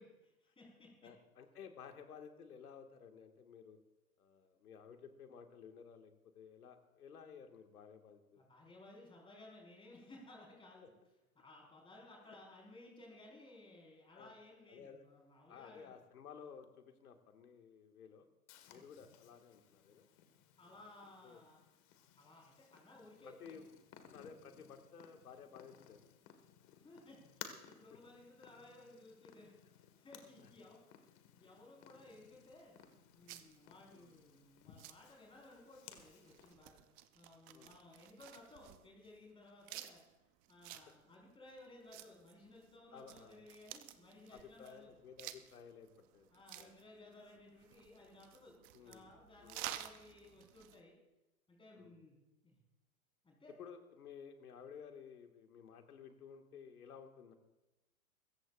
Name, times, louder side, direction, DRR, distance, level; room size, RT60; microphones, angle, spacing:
voice 1, 0.0-1.1 8.4-10.9 11.4-15.9 18.7-18.9 20.6-21.6 22.2-23.6 26.8-29.5 29.9-32.8 33.1-36.8 37.1-40.0 40.5-44.9 46.3-48.6 48.8-50.9 51.5-52.2 52.4-52.6 53.2-53.5, left 2 dB, 10° left, -2 dB, 4.7 m, -58 dB
voice 2, 1.0-3.8 4.2-8.4 10.8-10.9 12.3-12.4 14.1-14.4 14.7-15.0 15.5-18.3 18.7-20.1 20.6-20.9 21.2-21.4 23.2-23.6 24.1-26.1 30.4-30.5 33.9-34.2 37.5-37.8 42.9-43.4 44.3-46.7 48.7-49.1 49.4-49.6 51.8-52.0 53.6-57.3, left 7 dB, 85° left, 5 dB, 1.9 m, -55 dB
Purr, 18.5-36.5, left 9 dB, 40° left, 1.7 m, -59 dB
sound 1, 32.1-50.8, right 13 dB, 20° right, 0.4 m, -53 dB
24.0 x 14.5 x 2.5 m, 0.99 s
hypercardioid pair, 130°, 44 cm